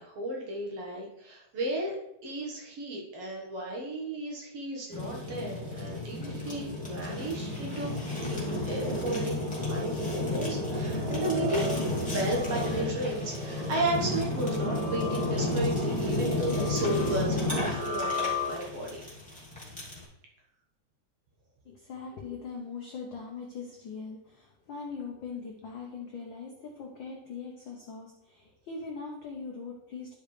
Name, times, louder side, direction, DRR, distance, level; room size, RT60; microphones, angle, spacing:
voice 1, 0.0-2.0 2.2-7.9 8.2-11.6 12.0-19.0, right 1 dB, 60° right, -2 dB, 2.2 m, -34 dB
Fire, 4.9-20.0, left 1 dB, 5° left, 1.9 m, -32 dB
sound 1, 10.7-19.0, left 3 dB, 80° right, 4.9 m, -37 dB
voice 2, 21.6-30.1, left 5 dB, 80° left, 0 dB, 1.0 m, -41 dB
11.5 x 5.0 x 3.3 m, 0.84 s
omnidirectional pair, 3.4 m